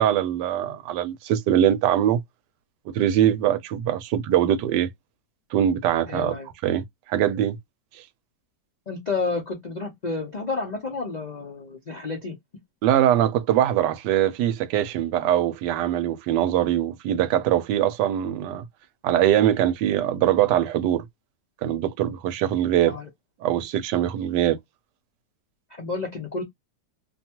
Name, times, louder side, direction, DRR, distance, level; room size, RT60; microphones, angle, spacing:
voice 1, 0.0-2.2 2.9-4.9 5.5-6.3 6.6-7.6 12.8-18.6 19.0-21.0 21.6-23.0 23.4-24.6, right 11 dB, 80° right, 1.2 m, -22 dB
voice 2, 6.1-6.5 8.9-12.4 22.9-23.1 25.7-26.4, left 3 dB, 55° left, 0.4 m, -30 dB
2.8 x 2.2 x 2.8 m
omnidirectional pair, 1.8 m